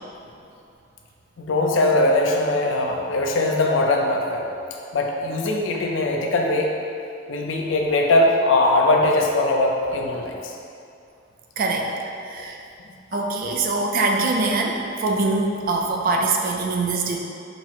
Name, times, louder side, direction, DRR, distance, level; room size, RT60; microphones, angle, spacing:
voice 1, 1.4-4.5 4.9-6.7 7.3-10.5 12.4-12.5 13.1-13.3, left 2 dB, 75° left, 0 dB, 0.5 m, -21 dB
voice 2, 11.6-11.9 12.2-12.6 13.1-17.2, right 3 dB, 45° right, 1 dB, 0.3 m, -23 dB
4.4 x 2.0 x 4.0 m, 2.6 s
head